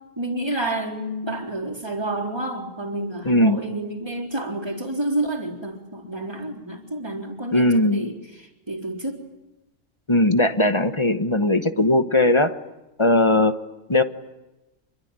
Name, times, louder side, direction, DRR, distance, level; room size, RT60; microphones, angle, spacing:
voice 1, 0.2-9.2, right 1 dB, 20° right, 1 dB, 3.9 m, -29 dB
voice 2, 3.2-3.6 7.5-8.1 10.1-12.6 13.0-13.5 13.9-14.0, left 1 dB, 25° left, 9 dB, 1.0 m, -19 dB
26.5 x 22.5 x 8.9 m, 1.0 s
omnidirectional pair, 1.3 m